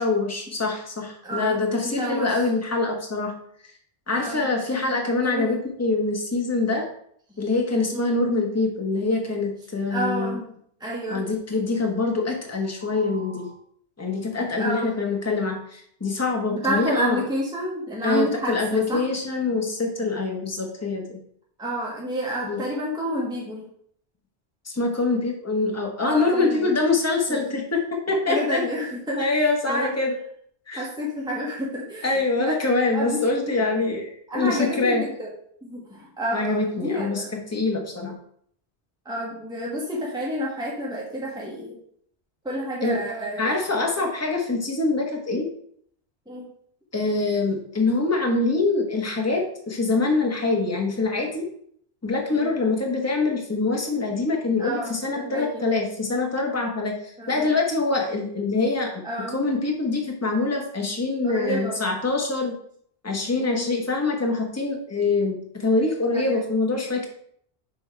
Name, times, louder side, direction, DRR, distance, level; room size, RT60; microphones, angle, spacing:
voice 1, 0.0-3.3 4.1-6.9 7.4-10.4 11.1-13.5 14.0-17.2 18.0-21.2 22.4-22.6 24.6-28.6 29.2-30.1 30.7-30.9 32.0-35.0 36.3-38.2 42.8-43.0 43.4-45.5 46.9-51.5 52.0-57.0 57.3-59.0 59.3-62.6 63.0-67.1, left 3 dB, 15° left, 1 dB, 1.0 m, -24 dB
voice 2, 1.2-2.4 4.2-4.4 4.7-5.6 7.9-8.1 9.9-10.5 10.8-11.2 14.6-14.9 16.5-19.0 21.6-23.6 26.0-26.8 27.3-27.6 28.3-29.3 29.7-29.9 30.8-32.5 32.9-33.5 34.3-35.3 35.6-37.3 39.0-41.8 42.4-43.5 43.9-44.1 46.3-46.5 52.3-52.5 54.6-55.6 57.2-57.5 59.0-59.4 61.2-61.8 63.4-63.7 66.1-66.4 66.7-66.8, equal, 5° right, -4 dB, 1.4 m, -30 dB
6.2 x 4.4 x 4.5 m, 0.64 s
omnidirectional pair, 1.1 m